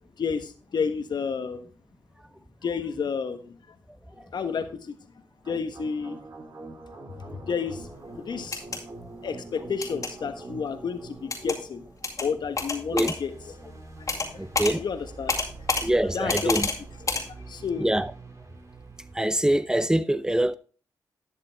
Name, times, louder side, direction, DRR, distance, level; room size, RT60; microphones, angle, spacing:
voice 1, 0.2-1.6 2.6-3.6 4.3-5.0 5.5-6.2 7.3-7.9 8.3-8.6 9.2-11.8 12.2-13.5 14.0-14.1 14.3-15.4 16.1-16.6 17.5-17.9, left 6 dB, 65° left, 1.3 m, -31 dB
sound 1, 5.4-19.2, right 3 dB, 40° right, 2.5 m, -45 dB
sound 2, 8.4-8.8 9.8-10.1 11.3-11.6 12.0-12.3 12.6-13.2 14.1-14.3 14.6-14.7 15.3-15.8 16.3-16.8 17.1-17.2, left 3 dB, 45° left, 2.3 m, -27 dB
voice 2, 14.4-14.8 15.8-16.7 17.8-18.1 19.1-20.6, right 1 dB, 10° right, 0.7 m, -24 dB
11.0 x 6.7 x 3.5 m
supercardioid pair, 50°, 8 cm